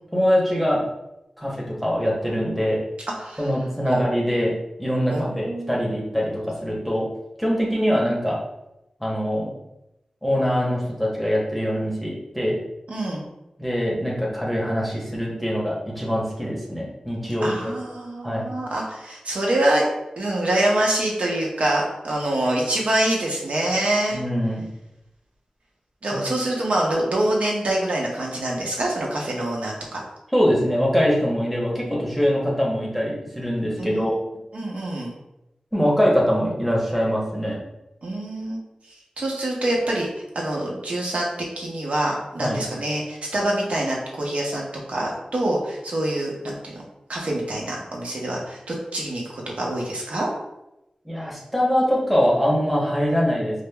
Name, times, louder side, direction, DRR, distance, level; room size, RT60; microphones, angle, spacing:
voice 1, 0.1-0.8 1.4-2.8 3.4-7.1 7.4-8.4 9.0-9.5 10.2-12.6 13.6-17.6 18.2-18.5 24.1-24.6 26.1-26.2 30.3-34.2 35.7-37.6 42.4-42.6 51.0-53.6, equal, ahead, -5 dB, 0.8 m, -23 dB
voice 2, 3.2-3.5 3.9-4.0 5.1-5.8 12.9-13.3 17.4-19.8 20.2-24.2 26.0-30.0 33.8-34.1 34.5-35.1 38.0-38.6 39.2-41.3 41.6-46.8 47.1-50.3, right 1 dB, 80° right, -2 dB, 0.7 m, -25 dB
4.9 x 2.0 x 2.2 m, 0.90 s
wide cardioid pair, 95°, 2 cm